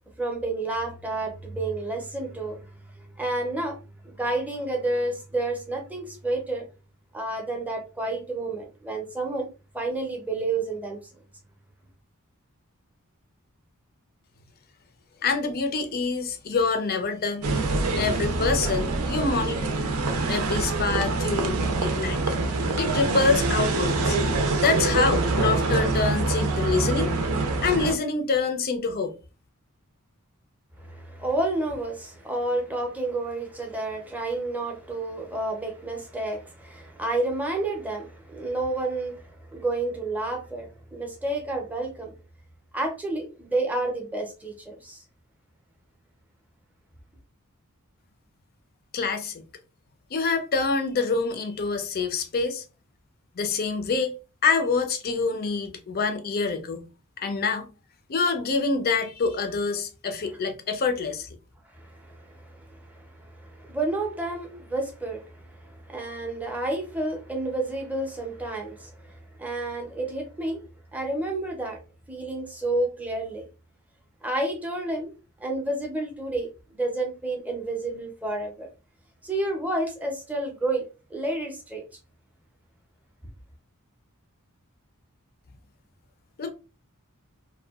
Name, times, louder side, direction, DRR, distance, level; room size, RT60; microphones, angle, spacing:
voice 1, 0.2-6.7 7.1-9.5 9.7-11.0 30.8-42.1 42.7-45.0 61.7-70.6 70.9-71.8 72.1-73.4 74.2-75.1 75.4-78.7 79.2-81.8, right 2 dB, 5° right, 0.6 m, -30 dB
voice 2, 15.2-17.5 18.0-19.8 20.3-27.1 27.6-29.1 48.9-49.4 50.1-52.6 53.4-54.1 54.4-56.9 57.2-57.7 58.1-61.3 86.4-86.5, left 4 dB, 45° left, 0.5 m, -26 dB
sound 1, 17.4-27.9, right 3 dB, 90° right, 0.5 m, -25 dB
2.6 x 2.2 x 2.3 m
head